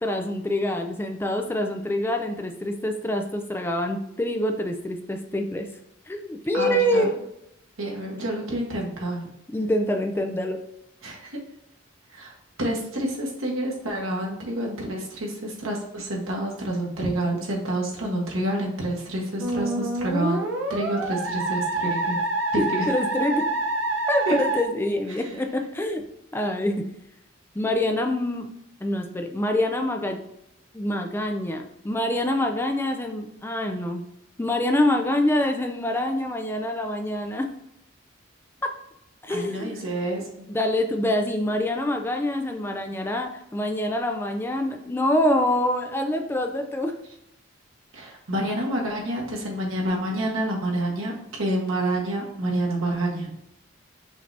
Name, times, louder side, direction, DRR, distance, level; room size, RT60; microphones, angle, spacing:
voice 1, 0.0-5.7 6.1-7.3 9.5-10.6 22.6-23.4 24.1-26.0 26.3-26.8 27.5-28.5 28.8-30.2 30.7-34.0 34.4-37.5 39.2-39.8 40.5-46.9, left 1 dB, 10° left, 4 dB, 0.3 m, -25 dB
voice 2, 6.5-7.1 7.8-9.2 11.0-11.4 12.1-22.2 22.5-22.9 24.3-24.4 25.2-25.3 39.3-40.5 47.9-53.3, right 1 dB, 85° right, -2 dB, 1.5 m, -28 dB
Musical instrument, 19.4-24.6, right 2 dB, 65° right, 0.7 m, -27 dB
5.8 x 2.8 x 3.2 m, 0.83 s
head